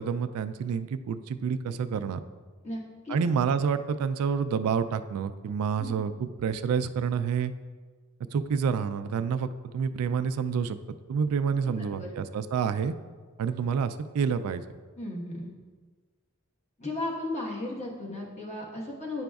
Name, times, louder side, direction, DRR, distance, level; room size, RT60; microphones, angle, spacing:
voice 1, 0.0-2.2 3.1-7.5 8.3-10.8 11.1-12.9 13.4-14.6, right 6 dB, 80° right, 12 dB, 0.3 m, -28 dB
voice 2, 2.6-3.2 5.8-5.9 11.7-12.1 15.0-15.5 16.8-19.2, left 2 dB, 30° left, -3 dB, 1.2 m, -35 dB
9.7 x 5.0 x 2.3 m, 1.5 s
head